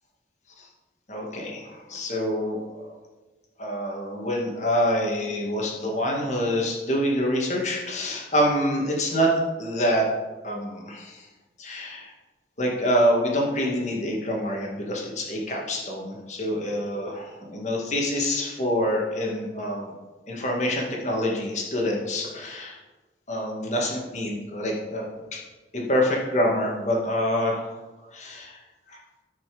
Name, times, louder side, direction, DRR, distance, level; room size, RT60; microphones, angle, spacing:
voice 1, 1.1-3.0 3.6-9.3 9.6-10.1 10.4-11.3 11.6-12.1 12.6-19.9 20.3-22.8 23.3-25.0 25.3-25.4 25.7-27.7 28.1-28.6 28.9-29.0, equal, 40° left, -1 dB, 2.2 m, -26 dB
13.5 x 6.1 x 5.2 m, 1.2 s
head